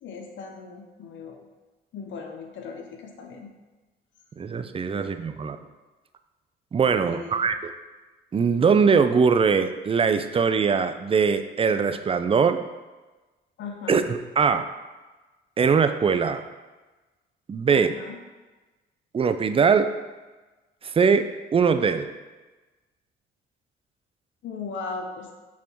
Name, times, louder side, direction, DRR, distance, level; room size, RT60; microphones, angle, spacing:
voice 1, 0.0-1.4 1.9-3.5 4.9-5.2 7.1-7.5 13.6-14.0 17.7-18.2 24.4-25.3, left 4 dB, 70° left, 2 dB, 0.9 m, -38 dB
voice 2, 4.4-5.6 6.7-7.7 8.3-12.6 13.9-14.6 15.6-16.4 17.5-17.9 19.1-19.9 20.8-21.3 21.5-22.1, right 5 dB, 30° right, 9 dB, 0.4 m, -21 dB
5.8 x 4.3 x 4.4 m, 1.2 s
cardioid pair, 90°, 20 cm